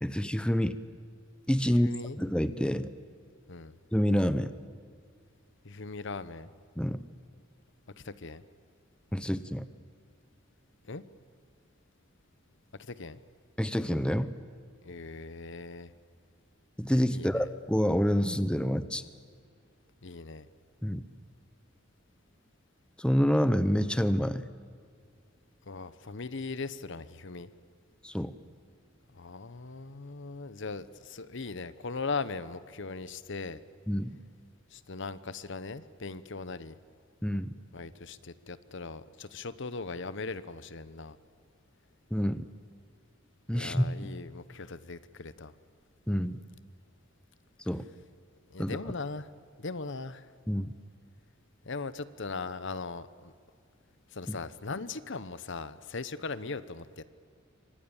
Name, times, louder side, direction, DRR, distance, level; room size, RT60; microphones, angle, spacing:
voice 1, 0.0-0.8 1.5-1.9 2.2-2.9 3.9-4.5 6.8-7.0 9.1-9.7 13.6-14.3 16.8-19.0 20.8-21.0 23.0-24.5 28.0-28.3 33.9-34.1 37.2-37.5 42.1-42.5 43.5-43.8 46.1-46.4 47.7-47.8 48.6-48.8 50.5-50.7 54.3-54.4, equal, 5° left, 12 dB, 0.8 m, -27 dB
voice 2, 1.7-2.2 3.5-3.8 5.6-6.5 8.0-8.4 10.9-11.0 12.8-13.2 14.8-15.9 17.1-17.5 20.0-20.5 25.7-27.5 29.1-33.6 34.7-36.8 37.7-41.2 43.5-45.5 48.5-49.3 49.6-50.3 51.6-53.3 54.1-57.0, left 4 dB, 65° left, 15 dB, 1.1 m, -39 dB
27.5 x 25.0 x 7.3 m, 2.2 s
head